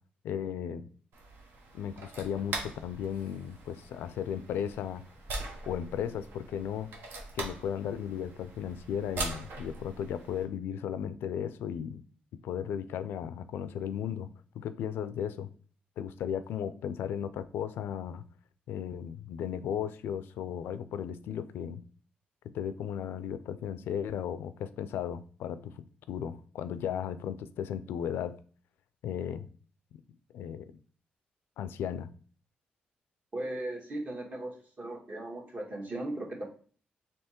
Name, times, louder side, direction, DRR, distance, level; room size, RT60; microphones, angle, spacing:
voice 1, 0.2-0.9 1.7-5.1 5.7-6.9 7.3-12.0 12.4-15.5 16.0-18.3 18.7-21.8 22.5-28.3 29.0-29.5 30.3-30.7 31.6-32.1, left 9 dB, 85° left, 13 dB, 0.3 m, -35 dB
sound 1, 1.1-10.5, right 2 dB, 80° right, 0.9 m, -42 dB
voice 2, 33.3-36.5, right 1 dB, 45° right, 1 dB, 1.4 m, -37 dB
3.4 x 2.9 x 4.3 m, 0.43 s
cardioid pair, 65°, 4 cm